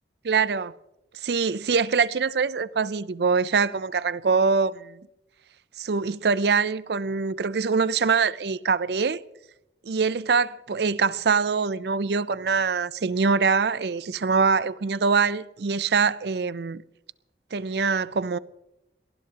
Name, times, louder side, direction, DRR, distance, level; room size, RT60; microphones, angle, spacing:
voice 1, 0.2-0.7 1.1-5.0 5.8-9.2 9.8-16.8 17.5-18.4, right 5 dB, 70° right, 0.5 m, -24 dB
22.5 x 19.0 x 2.9 m
head